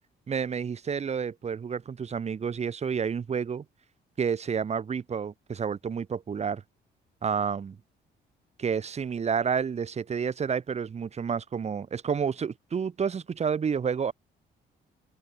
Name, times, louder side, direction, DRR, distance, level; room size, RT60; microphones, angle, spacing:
voice 1, 0.3-3.6 4.2-6.6 7.2-7.8 8.6-14.1, right 6 dB, 35° right, 0.7 m, -30 dB
open air
cardioid pair, 90°, 20 cm